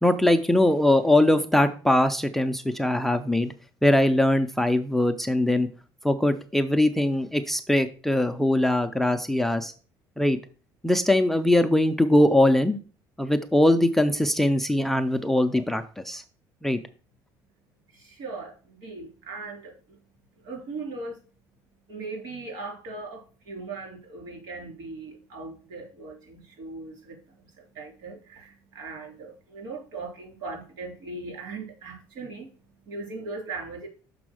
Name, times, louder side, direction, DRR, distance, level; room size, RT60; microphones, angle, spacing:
voice 1, 0.0-3.5 3.8-5.7 6.0-9.7 10.2-10.4 10.8-12.8 13.2-16.2 16.6-16.8, left 1 dB, 5° left, 10 dB, 0.4 m, -21 dB
voice 2, 17.9-19.7 20.4-21.2 21.9-27.2 27.7-32.5 32.9-33.9, right 3 dB, 70° right, 0 dB, 3.1 m, -39 dB
6.1 x 4.2 x 6.2 m, 0.39 s
cardioid pair, 160°, 8 cm